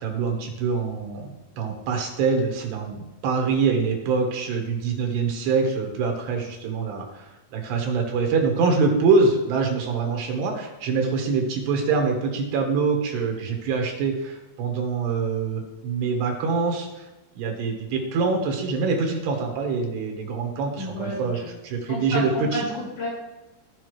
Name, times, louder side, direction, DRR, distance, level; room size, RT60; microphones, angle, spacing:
voice 1, 0.0-17.1 17.4-22.7, right 4 dB, 75° right, 2 dB, 3.4 m, -25 dB
voice 2, 20.8-21.3 21.9-23.1, left 1 dB, 60° left, -6 dB, 4.6 m, -30 dB
16.0 x 5.5 x 3.1 m, 1.0 s
omnidirectional pair, 4.9 m